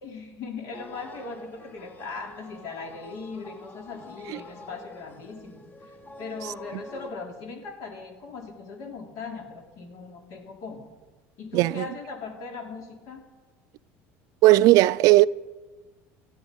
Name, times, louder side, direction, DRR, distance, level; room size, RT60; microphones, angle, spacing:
voice 1, 0.0-10.9 11.4-13.2, left 4 dB, 65° left, 3.2 m, -39 dB
sound 1, 0.7-7.1, left 2 dB, 30° left, 1.6 m, -46 dB
voice 2, 11.5-11.9 14.4-15.3, right 18 dB, 65° right, 0.4 m, -17 dB
17.5 x 12.5 x 5.3 m
supercardioid pair, 110°, 7 cm